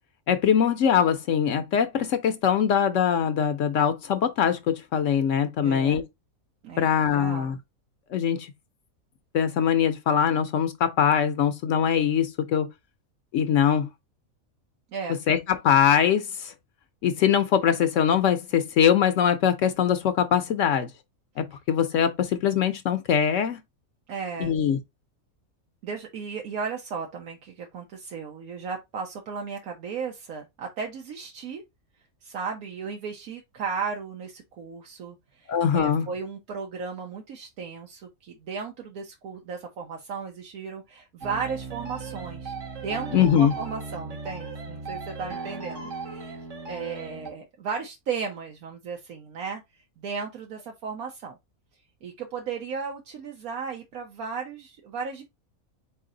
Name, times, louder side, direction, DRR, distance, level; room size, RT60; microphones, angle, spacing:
voice 1, 0.3-6.0 6.8-7.6 8.1-8.5 9.3-12.7 13.3-13.9 15.3-16.5 17.0-20.9 21.4-23.6 24.4-24.8 35.5-36.1 43.1-43.5, left 8 dB, 70° left, 0.9 m, -22 dB
voice 2, 5.6-6.0 6.6-7.5 14.9-15.2 24.1-24.5 25.8-31.6 32.2-42.6 42.8-46.4 46.7-49.6 50.0-51.4 52.0-55.2, right 5 dB, 85° right, 1.3 m, -35 dB
sound 1, 41.2-47.3, right 4 dB, 65° right, 1.5 m, -37 dB
4.2 x 3.2 x 3.7 m
omnidirectional pair, 1.5 m